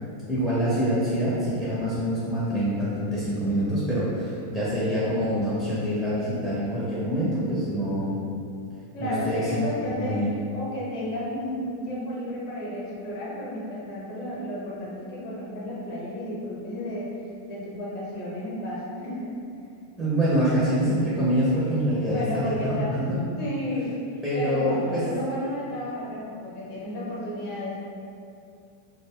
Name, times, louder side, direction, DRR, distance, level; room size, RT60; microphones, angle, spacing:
voice 1, 0.3-8.2 9.0-10.3 20.0-23.2 24.2-25.0, equal, 5° right, -9 dB, 0.6 m, -25 dB
voice 2, 8.9-10.2 10.5-17.1 17.5-19.4 22.1-23.1 23.4-23.9 24.3-27.8, equal, 45° left, -6 dB, 0.8 m, -32 dB
2.2 x 2.1 x 3.3 m, 2.5 s
figure-of-eight pair, 90°, 0 cm